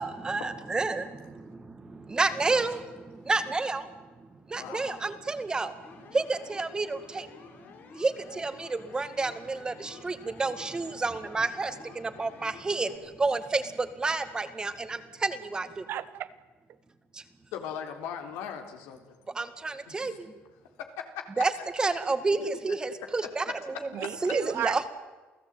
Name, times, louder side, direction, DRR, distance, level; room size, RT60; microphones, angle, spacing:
voice 1, 0.0-3.9 4.5-5.8 6.1-7.3 7.9-15.9 17.1-17.2 19.3-20.3 21.4-21.5 21.8-23.9 24.2-24.8, right 3 dB, 20° right, 11 dB, 2.0 m, -30 dB
voice 2, 4.6-5.0 17.5-19.2 19.9-20.2 24.5-24.6, left 8 dB, 90° left, 5 dB, 3.7 m, -39 dB
sound 1, 5.8-13.0, left 5 dB, 55° left, 6.4 m, -51 dB
voice 3, 15.9-16.4 23.9-24.9, right 11 dB, 60° right, 14 dB, 1.3 m, -33 dB
28.5 x 16.5 x 9.1 m, 1.3 s
cardioid pair, 115°, 4 cm